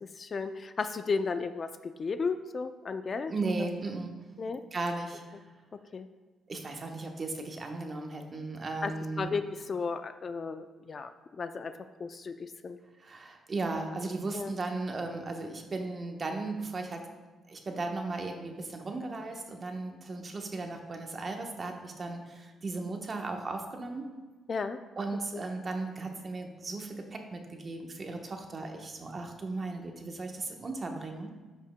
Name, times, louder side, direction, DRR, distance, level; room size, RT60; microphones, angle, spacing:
voice 1, 0.0-3.3 4.4-4.6 5.9-6.1 8.8-12.8 14.3-14.5 24.5-24.8 25.3-25.4, left 4 dB, 40° left, 10 dB, 0.4 m, -34 dB
voice 2, 3.3-4.2 4.7-5.2 6.5-9.3 13.0-17.1 17.5-24.1 25.0-31.3, right 3 dB, 35° right, 3 dB, 1.1 m, -36 dB
13.5 x 5.5 x 2.2 m, 1.3 s
cardioid pair, 90°, 0 cm